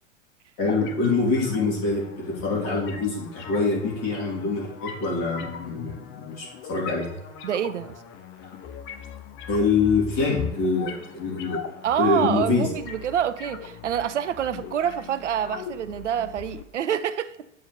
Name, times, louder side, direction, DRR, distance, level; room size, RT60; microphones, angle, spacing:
voice 1, 0.6-7.2 9.5-11.6 12.0-12.7, left 4 dB, 50° left, 3.4 m, -25 dB
sound 1, 0.6-16.6, left 7 dB, 30° left, 0.9 m, -40 dB
voice 2, 7.4-8.0 11.8-17.4, right 9 dB, 70° right, 0.6 m, -27 dB
8.5 x 4.4 x 5.2 m
figure-of-eight pair, 85°, 37 cm